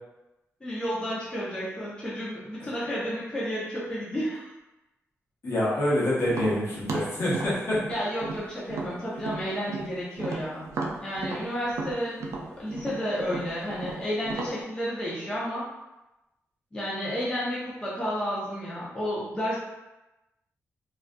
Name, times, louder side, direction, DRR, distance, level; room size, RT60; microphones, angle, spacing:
voice 1, 0.6-4.5 7.9-10.6 11.0-12.2 12.6-15.7 16.7-19.6, equal, 15° left, -8 dB, 0.5 m, -31 dB
voice 2, 5.4-7.8, left 1 dB, 55° left, -7 dB, 0.9 m, -26 dB
Tap, 6.3-9.9 10.2-14.6, right 3 dB, 70° right, 0.4 m, -34 dB
2.4 x 2.3 x 2.2 m, 0.99 s
wide cardioid pair, 135°, 5 cm